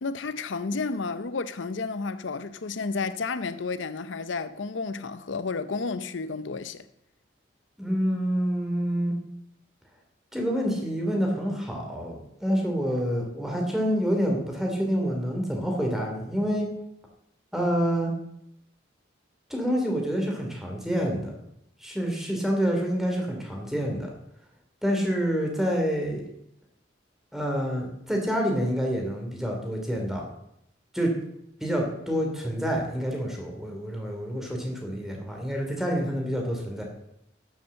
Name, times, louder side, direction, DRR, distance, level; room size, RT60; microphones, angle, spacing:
voice 1, 0.0-6.9, left 4 dB, 85° left, 0.6 m, -31 dB
voice 2, 7.8-9.1 10.3-16.7 17.5-18.1 19.5-21.4 21.8-24.1 24.8-26.3 27.3-30.3 30.9-31.1 31.6-36.8, equal, ahead, 2.9 m, -27 dB
12.5 x 7.1 x 7.6 m
head